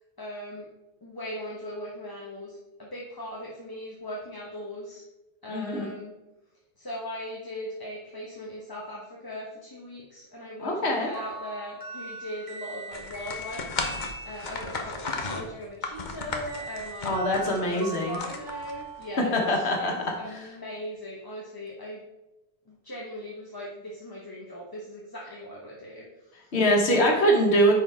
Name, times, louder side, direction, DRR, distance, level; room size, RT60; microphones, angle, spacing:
voice 1, 0.2-0.7 1.0-5.0 5.4-6.1 6.8-17.2 17.7-22.0 22.7-26.5, equal, 20° left, -3 dB, 1.0 m, -39 dB
voice 2, 5.5-5.9 10.6-11.1 17.1-18.2 19.3-19.9 26.5-27.7, equal, 85° left, 0 dB, 1.6 m, -23 dB
sound 1, 11.1-14.9 16.5-20.2, right 2 dB, 20° right, 1.8 m, -41 dB
sound 2, 12.9-19.0, left 3 dB, 50° left, 1.0 m, -35 dB
9.7 x 4.6 x 3.5 m, 1.0 s
omnidirectional pair, 1.1 m